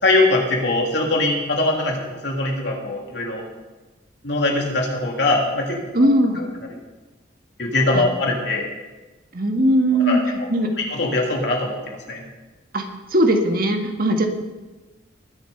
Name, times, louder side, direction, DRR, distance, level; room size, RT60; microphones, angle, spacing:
voice 1, 0.0-3.4 4.2-5.8 6.3-6.5 7.6-8.7 10.0-10.5 10.9-12.2, left 2 dB, 65° left, -1 dB, 3.1 m, -22 dB
voice 2, 5.9-6.4 7.9-8.0 9.3-10.2 10.5-10.7 12.7-12.8 13.1-14.3, right 1 dB, 50° right, 4 dB, 1.6 m, -19 dB
20.5 x 7.3 x 5.6 m, 1.2 s
head